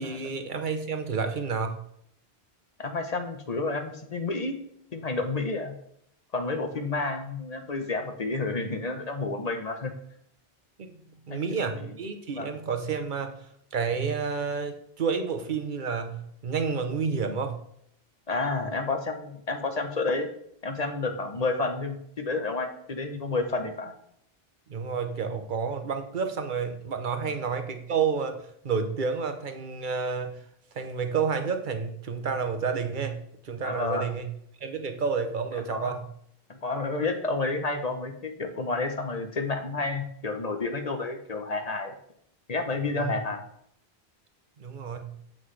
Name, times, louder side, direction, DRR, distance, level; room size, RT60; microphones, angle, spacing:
voice 1, 0.0-1.8 10.8-11.0 11.3-13.5 13.7-17.6 24.7-30.4 30.7-33.2 33.4-34.3 34.6-36.0 42.9-43.1 44.6-45.1, right 5 dB, 55° right, 7 dB, 0.9 m, -30 dB
voice 2, 2.8-4.6 4.9-5.7 6.3-9.9 11.3-11.4 12.3-12.5 18.3-20.3 20.6-23.9 27.2-27.3 33.6-34.1 35.7-35.9 36.5-41.9 42.5-43.4, left 3 dB, 40° left, 5 dB, 0.9 m, -30 dB
7.6 x 5.9 x 3.3 m, 0.69 s
omnidirectional pair, 1.0 m